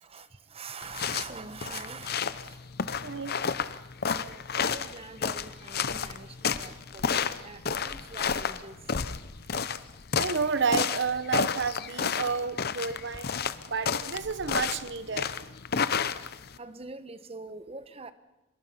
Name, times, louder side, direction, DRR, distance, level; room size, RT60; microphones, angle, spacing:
voice 1, 0.0-2.1 2.4-2.6 4.3-8.8 16.6-18.1, right 4 dB, 30° right, 12 dB, 1.1 m, -44 dB
sound 1, 0.8-16.6, left 6 dB, 50° left, 0.8 m, -31 dB
voice 2, 3.0-3.4 10.2-13.3 13.7-15.3, right 5 dB, 60° right, 13 dB, 1.0 m, -30 dB
24.5 x 21.5 x 5.7 m, 0.98 s
head